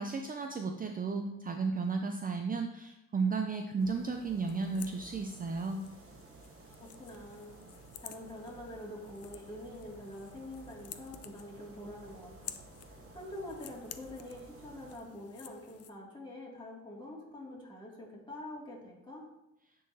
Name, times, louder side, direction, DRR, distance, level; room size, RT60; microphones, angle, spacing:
voice 1, 0.0-5.8, right 4 dB, 30° right, 4 dB, 0.5 m, -34 dB
sound 1, 3.8-15.0, right 3 dB, 45° right, 1.1 m, -54 dB
sound 2, 4.5-15.9, left 10 dB, 55° left, 0.5 m, -52 dB
voice 2, 6.8-7.5 8.0-12.6 13.1-19.3, left 1 dB, 15° left, -5 dB, 2.4 m, -46 dB
10.0 x 3.9 x 2.8 m, 0.91 s
cardioid pair, 90°, 30 cm